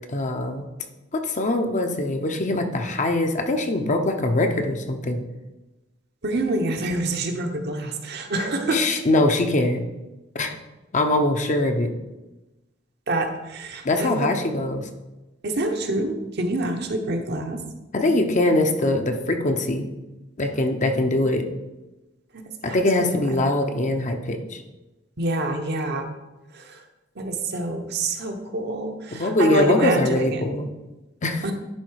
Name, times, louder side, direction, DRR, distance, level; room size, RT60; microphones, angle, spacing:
voice 1, 0.1-0.7 1.1-5.2 8.7-9.8 10.3-10.5 10.9-11.9 13.8-14.9 17.9-19.9 20.4-21.5 22.6-24.6 29.1-30.7 31.2-31.4, left 2 dB, 40° left, 5 dB, 0.8 m, -22 dB
voice 2, 6.2-8.8 13.1-14.3 15.4-17.6 22.3-23.2 25.2-26.1 26.5-26.8 27.2-30.4 31.4-31.5, right 2 dB, 60° right, 4 dB, 1.0 m, -27 dB
10.5 x 3.8 x 4.8 m, 1.1 s
head